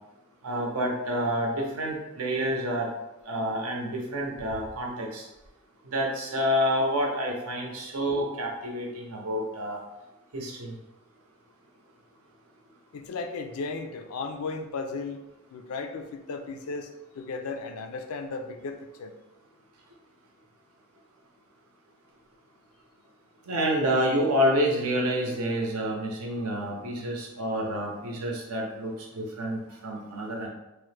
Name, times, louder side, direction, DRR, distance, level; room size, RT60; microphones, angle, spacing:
voice 1, 0.4-2.9 3.3-5.2 5.9-9.8 10.3-10.7 23.5-30.5, equal, 80° right, -1 dB, 0.7 m, -28 dB
voice 2, 12.9-15.2 15.5-16.9 17.2-19.1 30.1-30.2, left 4 dB, 75° left, 6 dB, 0.4 m, -35 dB
3.0 x 2.1 x 3.2 m, 0.96 s
head